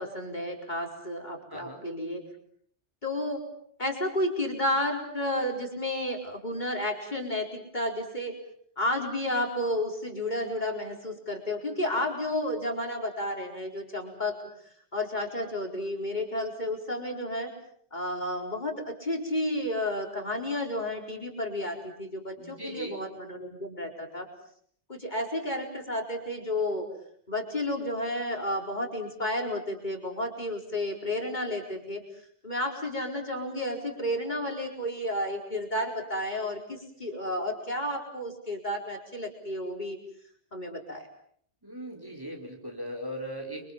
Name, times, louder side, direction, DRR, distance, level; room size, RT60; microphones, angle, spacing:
voice 1, 0.0-2.2 3.0-3.4 3.8-8.4 8.8-14.3 14.9-17.5 17.9-24.3 24.9-26.9 27.3-32.0 32.4-40.0 40.5-41.1, left 1 dB, 40° left, 2 dB, 4.8 m, -31 dB
voice 2, 1.5-1.8 22.4-23.0 41.6-43.7, equal, 20° right, 2 dB, 4.7 m, -39 dB
29.5 x 24.5 x 7.3 m, 0.62 s
omnidirectional pair, 1.2 m